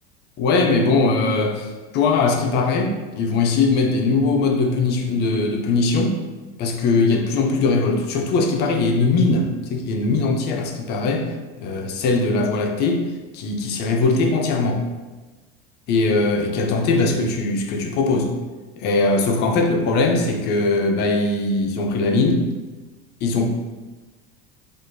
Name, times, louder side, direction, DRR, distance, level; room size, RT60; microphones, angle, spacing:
voice 1, 0.4-1.7 1.9-6.2 6.6-11.3 11.6-13.1 13.3-14.8 15.9-18.4 18.8-22.5 23.2-23.4, left 3 dB, 35° left, 3 dB, 0.4 m, -20 dB
4.5 x 2.4 x 2.5 m, 1.2 s
cardioid pair, 155°, 31 cm